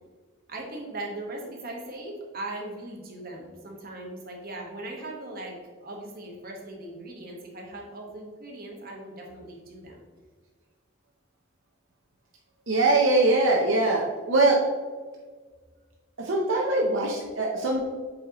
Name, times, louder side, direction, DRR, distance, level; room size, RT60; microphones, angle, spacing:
voice 1, 0.5-5.5 5.8-10.0, right 2 dB, 50° right, -1 dB, 1.4 m, -39 dB
voice 2, 12.7-14.6 16.2-17.8, right 2 dB, 75° right, -1 dB, 0.7 m, -22 dB
7.7 x 4.2 x 3.0 m, 1.5 s
head